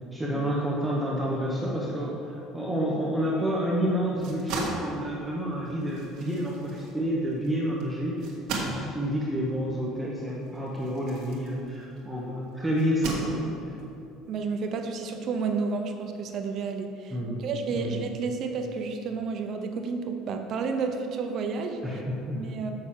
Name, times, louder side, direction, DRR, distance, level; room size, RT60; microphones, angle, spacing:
voice 1, 0.1-13.7 17.1-17.5 17.7-18.0 21.8-22.5, equal, 5° right, -4 dB, 0.9 m, -29 dB
sound 1, 4.0-12.1 12.8-13.8, right 3 dB, 60° right, 1.7 m, -38 dB
voice 2, 14.3-17.1 17.4-21.8 22.3-22.7, right 4 dB, 45° right, 5 dB, 0.6 m, -31 dB
6.6 x 5.8 x 7.3 m, 2.7 s
cardioid pair, 160°, 0 cm